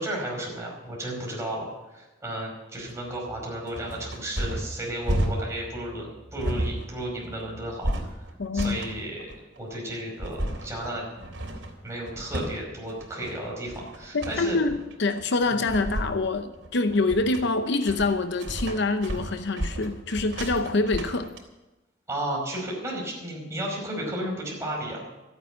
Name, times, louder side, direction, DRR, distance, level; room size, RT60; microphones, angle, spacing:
voice 1, 0.0-8.2 8.5-9.3 9.6-11.0 11.8-14.6 15.5-15.6 22.1-25.1, right 1 dB, 15° right, 5.1 m, -33 dB
sound 1, 2.8-21.4, right 1 dB, 70° right, 3.7 m, -33 dB
voice 2, 8.4-8.8 14.1-21.3, left 3 dB, 65° left, 0.8 m, -25 dB
14.0 x 8.9 x 9.1 m
head